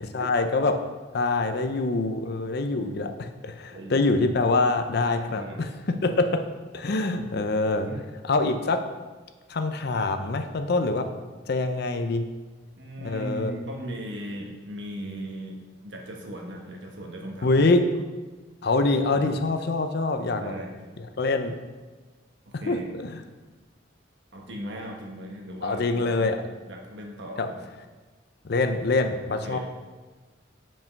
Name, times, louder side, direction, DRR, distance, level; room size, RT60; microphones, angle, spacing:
voice 1, 0.1-0.7 1.1-5.4 6.0-6.4 6.7-7.9 8.3-8.8 9.5-11.1 11.5-12.2 13.0-13.5 17.4-17.8 18.6-20.5 21.2-21.5 22.7-23.2 25.6-26.3 27.4-27.5 28.4-29.6, left 3 dB, 60° left, 7 dB, 0.6 m, -24 dB
voice 2, 3.7-4.1 5.3-5.7 7.8-8.0 12.8-17.8 19.1-19.4 20.4-20.8 22.4-22.9 24.3-26.3 26.7-27.7 29.4-29.6, right 1 dB, 65° right, 0 dB, 1.2 m, -38 dB
5.5 x 5.4 x 5.2 m, 1.3 s
head